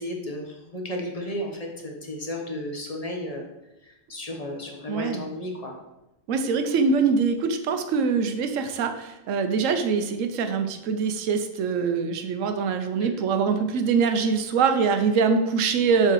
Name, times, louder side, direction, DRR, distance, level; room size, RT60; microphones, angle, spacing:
voice 1, 0.0-3.5 3.8-5.7 13.0-13.2, left 1 dB, 30° left, 1 dB, 1.1 m, -33 dB
voice 2, 4.9-5.3 6.3-16.1, right 5 dB, 75° right, 7 dB, 1.1 m, -23 dB
6.7 x 4.7 x 4.6 m, 0.94 s
omnidirectional pair, 1.4 m